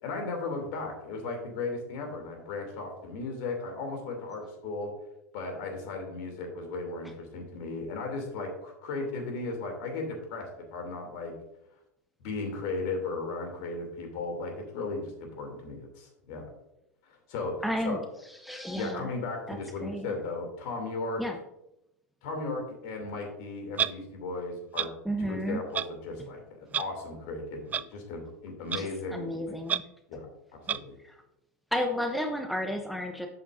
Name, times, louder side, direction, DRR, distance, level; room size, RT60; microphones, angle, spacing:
voice 1, 0.0-4.9 5.3-11.3 12.2-16.5 17.0-17.5 17.8-18.0 18.8-21.2 22.2-24.9 25.2-29.5 30.1-30.3 30.7-31.0, left 3 dB, 50° left, 3 dB, 2.8 m, -36 dB
voice 2, 17.6-18.0 18.4-19.1 19.5-20.1 21.2-21.4 25.1-25.6 28.7-29.8 31.0-31.1 31.7-33.3, equal, ahead, 3 dB, 0.8 m, -32 dB
Clock, 23.8-23.9 24.8-24.9 25.7-25.9 26.7-26.8 27.7-27.8 28.7-28.8 29.7-29.8 30.7-30.8, right 7 dB, 20° right, 0.3 m, -28 dB
11.0 x 8.5 x 2.6 m, 0.86 s
figure-of-eight pair, 85°, 9 cm